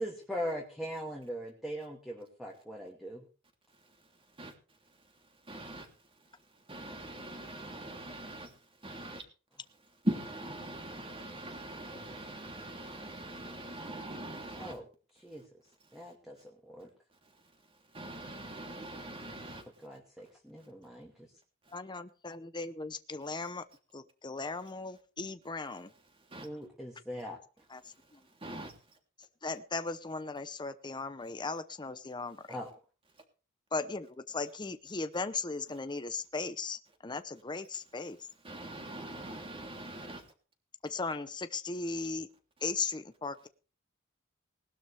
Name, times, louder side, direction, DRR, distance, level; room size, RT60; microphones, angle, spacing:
voice 1, 0.0-3.3 14.6-14.8 15.2-15.4 15.9-16.9 19.8-21.1 26.4-27.4 32.5-32.7, equal, ahead, -1 dB, 2.4 m, -40 dB
voice 2, 3.7-4.5 4.8-9.2 10.0-14.8 15.3-15.5 15.9-16.1 17.2-19.9 20.6-20.7 21.6-21.8 23.4-23.5 26.0-26.5 27.8-29.0 38.4-40.3, right 1 dB, 25° right, 3 dB, 3.1 m, -42 dB
voice 3, 21.7-23.6 23.9-25.9 27.7-28.2 29.4-32.6 33.7-38.2 40.8-42.3 42.6-43.5, left 3 dB, 20° left, 10 dB, 0.8 m, -37 dB
20.0 x 12.5 x 3.4 m, 0.36 s
head